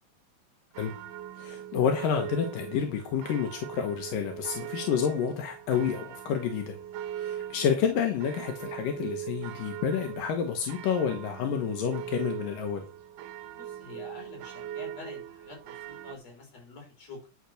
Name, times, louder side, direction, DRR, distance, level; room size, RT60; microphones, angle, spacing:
sound 1, 0.7-16.2, right 11 dB, 75° right, 2.6 m, -41 dB
voice 1, 1.4-6.7 7.1-12.8, left 7 dB, 80° left, 4 dB, 3.0 m, -29 dB
voice 2, 13.5-17.3, left 3 dB, 50° left, 0 dB, 5.3 m, -47 dB
10.0 x 6.1 x 6.5 m, 0.34 s
omnidirectional pair, 3.8 m